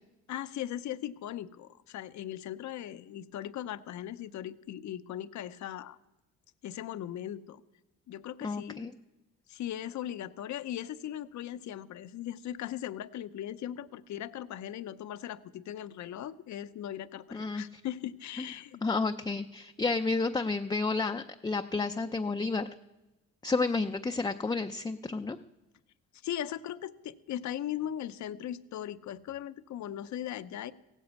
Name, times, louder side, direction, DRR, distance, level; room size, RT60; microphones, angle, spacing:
voice 1, 0.3-6.0 6.6-7.6 8.1-8.9 9.5-18.8 26.2-30.7, left 11 dB, 70° left, 14 dB, 0.8 m, -39 dB
voice 2, 8.4-8.9 17.3-17.8 18.4-18.5 18.8-22.7 23.4-25.4, left 3 dB, 15° left, 7 dB, 0.5 m, -31 dB
16.5 x 8.3 x 8.2 m, 1.0 s
cardioid pair, 90°, 30 cm